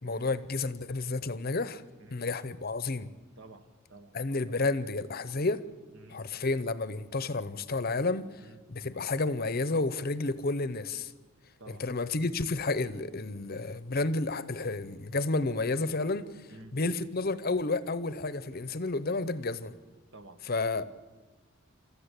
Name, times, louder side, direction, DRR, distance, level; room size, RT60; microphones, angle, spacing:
voice 1, 0.0-1.8 2.1-3.1 4.1-5.6 6.1-8.4 8.7-11.1 11.8-19.7 20.5-20.8, left 3 dB, 45° left, 0.8 m, -31 dB
voice 2, 3.4-4.2 5.9-6.3 8.4-8.6 11.6-11.8 16.5-16.8 20.1-20.4, right 2 dB, 60° right, 1.5 m, -51 dB
27.5 x 14.0 x 8.4 m
head